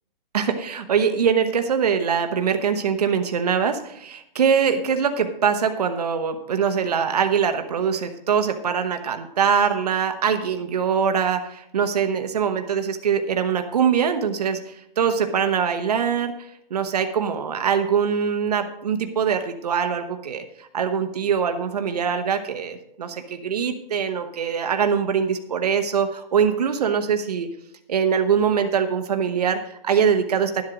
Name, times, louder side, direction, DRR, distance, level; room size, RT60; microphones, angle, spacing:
voice 1, 0.3-27.5 27.9-30.6, right 7 dB, 40° right, 7 dB, 0.9 m, -23 dB
11.5 x 7.7 x 5.0 m, 0.78 s
hypercardioid pair, 175°, 29 cm